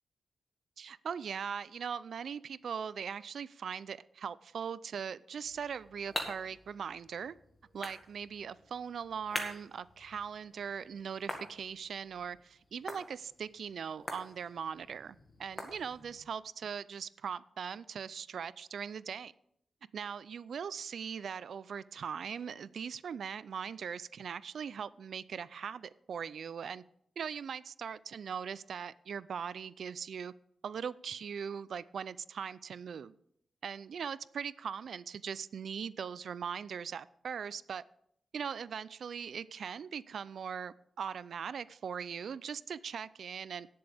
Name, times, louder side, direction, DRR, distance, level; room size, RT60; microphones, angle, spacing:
voice 1, 0.8-7.4 7.7-19.3 19.9-26.8 27.2-30.3 30.6-33.1 33.6-37.8 38.3-43.7, right 7 dB, 70° right, 0.4 m, -40 dB
sound 1, 5.4-16.3, left 1 dB, 15° left, 1.8 m, -46 dB
18.0 x 7.8 x 3.5 m
wide cardioid pair, 140°, 0 cm